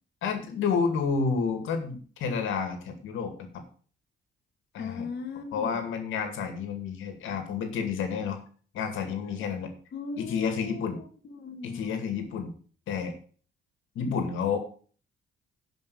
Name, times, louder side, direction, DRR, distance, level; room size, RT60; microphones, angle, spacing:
voice 1, 0.2-3.3 4.7-5.1 5.5-8.4 8.7-9.7 10.2-11.0 11.6-12.5 12.9-13.2 14.0-14.6, left 5 dB, 85° left, 7 dB, 2.2 m, -30 dB
voice 2, 4.8-5.8 9.9-12.0, left 5 dB, 55° left, 3 dB, 1.7 m, -38 dB
11.5 x 5.4 x 7.0 m, 0.43 s
cardioid pair, 90°, 20 cm